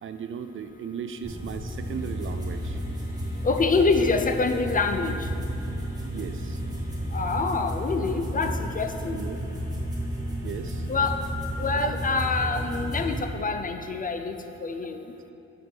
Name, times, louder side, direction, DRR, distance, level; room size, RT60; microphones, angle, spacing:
voice 1, 0.0-2.8 6.1-6.6 9.1-9.4 10.4-10.9 11.8-11.9, right 7 dB, 45° right, 9 dB, 0.4 m, -36 dB
sound 1, 1.2-13.2, equal, 10° right, 1.8 m, -32 dB
voice 2, 3.4-5.3 7.1-9.2 10.9-11.2 11.6-14.4 14.6-15.0, left 4 dB, 30° left, 6 dB, 0.4 m, -26 dB
6.2 x 5.1 x 6.1 m, 2.8 s
cardioid pair, 90°, 30 cm